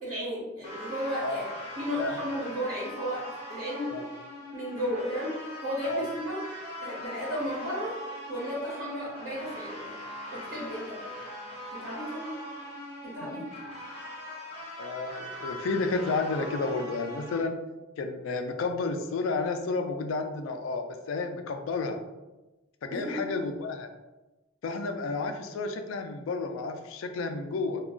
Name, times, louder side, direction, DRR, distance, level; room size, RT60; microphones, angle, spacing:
voice 1, 0.0-4.0 4.5-6.4 6.8-8.0 8.3-10.0 10.3-11.1 11.7-12.3 13.0-13.4 22.9-23.2, equal, 85° right, -8 dB, 1.1 m, -34 dB
sound 1, 0.6-17.4, equal, 30° left, 0.7 m, -41 dB
voice 2, 14.8-17.6 18.0-22.0 22.8-23.9 24.6-27.8, left 3 dB, 90° left, 6 dB, 0.3 m, -31 dB
2.3 x 2.2 x 3.6 m, 1.1 s
head